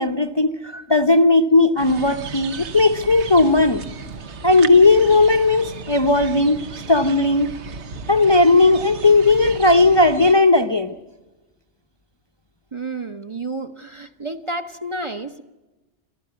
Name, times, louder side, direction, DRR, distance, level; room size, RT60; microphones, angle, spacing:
voice 1, 0.0-3.8 4.4-6.6 6.9-7.5 8.1-10.9, left 3 dB, 25° left, 6 dB, 0.7 m, -16 dB
sound 1, 1.8-10.3, right 5 dB, 75° right, 1.4 m, -35 dB
voice 2, 12.7-15.4, right 2 dB, 30° right, 7 dB, 0.9 m, -30 dB
27.5 x 13.5 x 9.4 m, 1.1 s
omnidirectional pair, 1.2 m